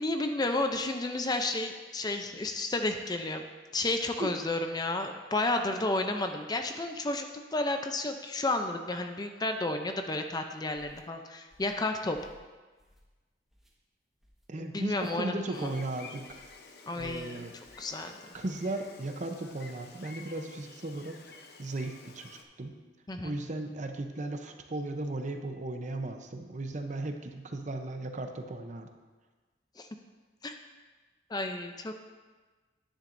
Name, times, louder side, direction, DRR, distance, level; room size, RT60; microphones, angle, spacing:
voice 1, 0.0-3.4 3.7-12.2 14.6-15.7 16.9-17.5 17.8-18.2 23.1-23.4 29.8-29.9 30.4-30.5 31.3-31.9, left 2 dB, 20° left, 5 dB, 0.5 m, -32 dB
sound 1, 10.7-11.0 11.5-11.8 12.1-12.4 12.8-13.2 13.5-13.7 14.2-14.5 14.9-15.2 15.6-15.9 16.3-16.6 17.0-17.3 17.6-17.9 18.3-18.6, equal, ahead, 1.3 m, -59 dB
voice 2, 14.5-16.4 16.9-17.5 18.3-22.8 23.2-28.9, right 2 dB, 40° right, 5 dB, 0.7 m, -36 dB
Gull seagull, 15.5-22.4, left 4 dB, 55° left, 0.8 m, -51 dB
10.0 x 10.0 x 2.6 m, 1.3 s
head